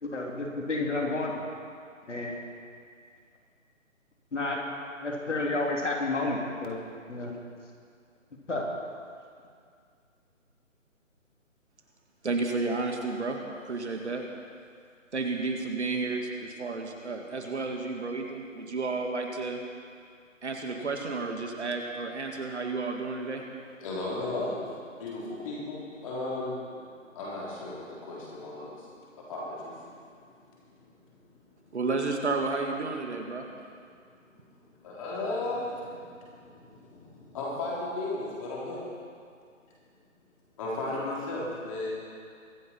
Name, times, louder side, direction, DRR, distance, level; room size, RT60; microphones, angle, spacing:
voice 1, 0.0-1.4 2.1-2.4 4.3-4.6 5.0-6.8 7.1-7.3 8.5-8.7, left 2 dB, 60° left, -1 dB, 3.2 m, -30 dB
voice 2, 12.2-14.3 15.1-19.6 20.4-23.4 31.7-33.5, right 3 dB, 60° right, 2 dB, 2.1 m, -31 dB
voice 3, 23.8-30.1 30.7-30.8 34.8-38.8 40.6-41.9, left 2 dB, 25° left, -5 dB, 3.6 m, -35 dB
23.5 x 9.5 x 4.5 m, 2.2 s
figure-of-eight pair, 150°, 40 cm